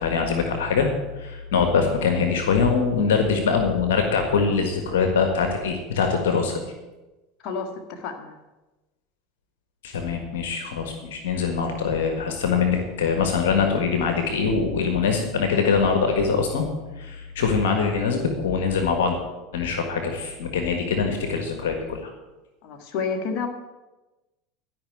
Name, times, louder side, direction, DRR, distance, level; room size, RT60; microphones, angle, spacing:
voice 1, 0.0-0.9 1.2-6.6 9.8-16.7 17.0-19.1 19.5-22.1, left 5 dB, 75° left, 4 dB, 1.6 m, -23 dB
voice 2, 7.4-8.3 22.6-23.5, left 5 dB, 55° left, 3 dB, 1.8 m, -30 dB
12.5 x 5.8 x 8.7 m, 1.1 s
hypercardioid pair, 85°, 0 cm